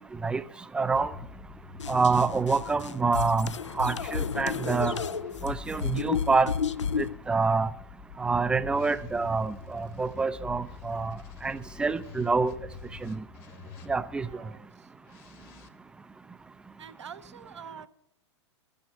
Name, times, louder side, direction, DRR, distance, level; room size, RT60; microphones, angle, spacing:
voice 1, 0.7-1.1 1.9-3.5 3.8-4.9 5.4-6.5 7.0-7.7 8.2-12.5 13.0-13.2 13.9-14.3, right 4 dB, 5° right, 0.4 m, -27 dB
sound 1, 0.9-6.0 6.9-14.3 15.0-15.7, left 6 dB, 35° left, 1.2 m, -46 dB
sound 2, 1.8-7.1, left 6 dB, 80° left, 0.5 m, -32 dB
voice 2, 14.2-14.9 16.8-17.9, right 7 dB, 75° right, 0.8 m, -46 dB
12.0 x 8.9 x 5.7 m
figure-of-eight pair, 105°, 15 cm